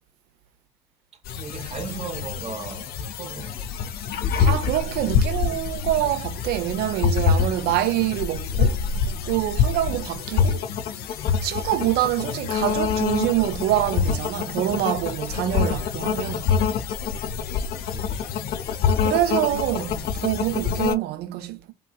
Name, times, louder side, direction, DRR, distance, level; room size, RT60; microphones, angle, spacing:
sound 1, 1.3-21.0, left 6 dB, 60° left, 0.5 m, -26 dB
voice 1, 1.3-3.6 17.8-18.5, right 5 dB, 35° right, 0.9 m, -37 dB
voice 2, 4.4-8.8 9.3-10.7 11.4-16.5 19.0-21.7, right 14 dB, 60° right, 0.5 m, -25 dB
3.0 x 2.3 x 2.2 m
hypercardioid pair, 55°, 19 cm